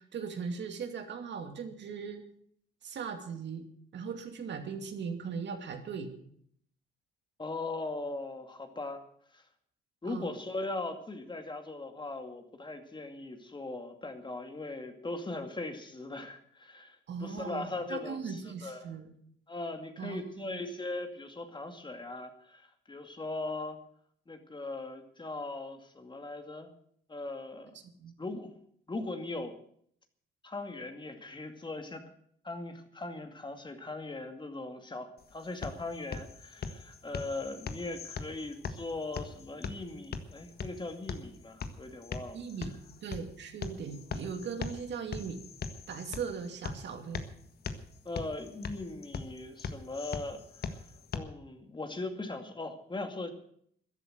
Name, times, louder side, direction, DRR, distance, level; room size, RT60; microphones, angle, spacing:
voice 1, 0.0-2.3 2.8-3.6 3.9-6.1 10.0-10.3 17.1-19.1 20.0-20.6 28.0-28.1 42.3-42.7 43.0-45.4 45.9-47.2, right 6 dB, 65° right, 5 dB, 2.6 m, -39 dB
voice 2, 7.4-9.0 9.3-9.4 10.0-18.9 19.5-23.8 24.3-26.7 27.1-27.7 28.2-28.5 28.9-29.5 30.4-32.0 32.4-42.4 48.0-50.8 51.1-53.3, left 2 dB, 25° left, 6 dB, 2.3 m, -39 dB
sound 1, 35.2-51.2, left 5 dB, 50° left, 1.6 m, -41 dB
14.5 x 11.0 x 7.9 m, 0.64 s
cardioid pair, 90°, 20 cm